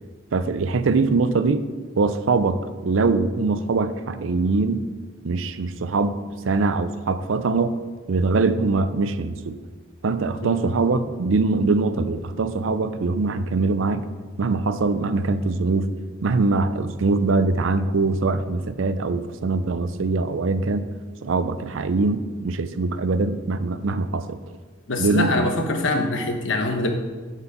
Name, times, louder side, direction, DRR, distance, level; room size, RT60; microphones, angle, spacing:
voice 1, 0.3-1.7 1.9-4.9 5.2-7.8 8.1-9.6 10.0-14.1 14.4-15.9 16.2-20.9 21.2-24.4 25.0-25.5, right 3 dB, 70° right, 12 dB, 0.5 m, -22 dB
voice 2, 24.9-26.9, left 2 dB, 65° left, 4 dB, 1.1 m, -23 dB
9.9 x 4.6 x 5.6 m, 1.4 s
head